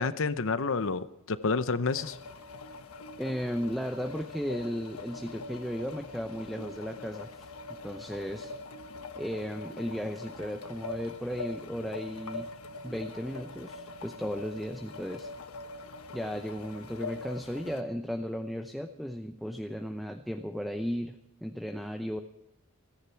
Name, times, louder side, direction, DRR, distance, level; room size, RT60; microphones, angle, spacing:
voice 1, 0.0-2.2, left 4 dB, 60° left, 13 dB, 0.8 m, -29 dB
sound 1, 1.9-17.8, left 3 dB, 80° left, 1.2 m, -43 dB
voice 2, 3.2-7.5 7.8-8.5 9.2-12.5 12.8-15.3 16.1-22.2, equal, ahead, 6 dB, 0.7 m, -35 dB
29.5 x 10.5 x 4.5 m, 0.80 s
head